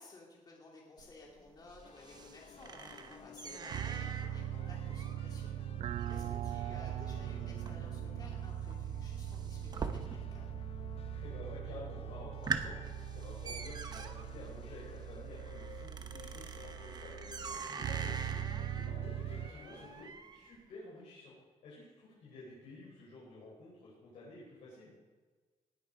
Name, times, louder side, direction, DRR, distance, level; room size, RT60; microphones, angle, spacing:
voice 1, 0.0-5.5 6.1-10.5, left 2 dB, 35° left, -2 dB, 2.6 m, -55 dB
sound 1, 1.0-10.6 10.8-11.4 11.8-11.9 12.2-20.6, right 5 dB, 35° right, 0.9 m, -44 dB
sound 2, 1.8-20.1, left 8 dB, 55° left, 0.6 m, -56 dB
sound 3, 3.7-19.5, right 10 dB, 75° right, 0.4 m, -41 dB
voice 2, 5.4-5.8 11.1-12.8 13.1-17.2 17.5-21.3 21.6-24.9, left 2 dB, 85° left, -6 dB, 4.9 m, -51 dB
19.0 x 8.4 x 5.2 m, 1.4 s
wide cardioid pair, 145°, 12 cm